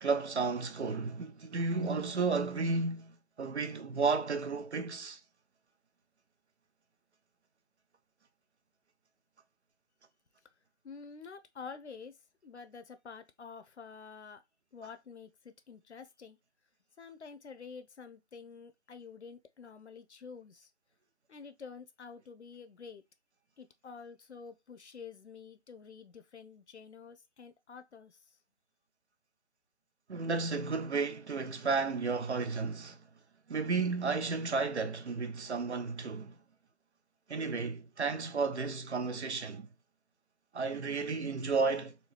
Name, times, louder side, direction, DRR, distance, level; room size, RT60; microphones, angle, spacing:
voice 1, 0.0-5.2 30.1-33.0 33.5-36.4 37.3-39.7 40.5-42.0, right 4 dB, 85° right, 0.8 m, -33 dB
voice 2, 10.8-12.2 12.4-14.4 14.7-16.4 17.0-20.7 21.3-23.0 23.6-28.4, left 5 dB, 85° left, 0.8 m, -49 dB
4.2 x 2.3 x 3.3 m
figure-of-eight pair, 165°, 33 cm